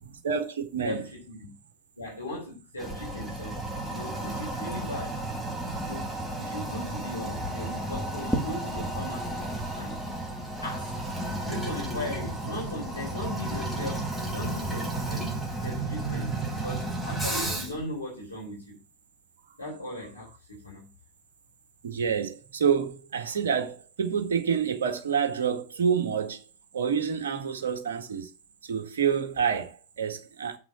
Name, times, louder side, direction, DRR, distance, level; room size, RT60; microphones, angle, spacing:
voice 1, 0.0-1.0 21.8-26.4 26.7-28.3 28.7-30.6, right 7 dB, 65° right, 1.9 m, -28 dB
voice 2, 0.8-1.5 2.0-3.6 3.9-5.2 5.8-6.1 6.4-9.4 9.7-10.0 10.6-11.0 11.5-15.4 15.6-18.8 19.6-20.9, left 1 dB, 80° left, 3.6 m, -38 dB
Toilet flush, 2.8-17.8, right 2 dB, ahead, 2.1 m, -32 dB
7.4 x 6.1 x 7.7 m
figure-of-eight pair, 90°, 0 cm